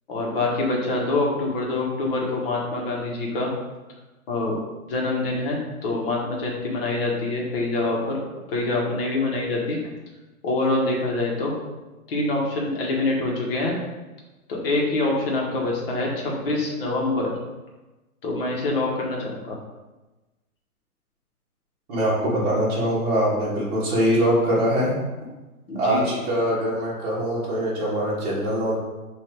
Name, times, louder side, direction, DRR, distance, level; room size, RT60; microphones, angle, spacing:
voice 1, 0.1-3.5 4.3-4.5 4.9-8.2 8.5-9.8 10.4-11.5 12.1-13.7 14.5-17.3 18.2-19.6 25.7-26.2, left 2 dB, 40° left, -2 dB, 1.2 m, -25 dB
voice 2, 21.9-24.9 25.7-28.8, equal, 25° right, -7 dB, 1.5 m, -23 dB
5.7 x 2.7 x 3.4 m, 1.1 s
hypercardioid pair, 145°, 45 cm